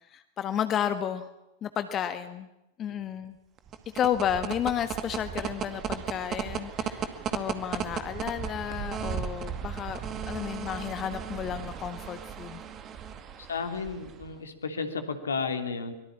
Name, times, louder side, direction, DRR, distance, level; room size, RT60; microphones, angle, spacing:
voice 1, 0.1-1.3 1.6-2.5 2.8-3.4 3.9-10.0 10.3-12.6, left 9 dB, 30° left, 10 dB, 1.5 m, -32 dB
sound 1, 3.6-14.4, right 8 dB, 30° right, 2.2 m, -36 dB
voice 2, 13.4-15.9, left 5 dB, 70° left, 8 dB, 3.0 m, -33 dB
24.0 x 22.5 x 8.7 m, 0.89 s
figure-of-eight pair, 90°, 0 cm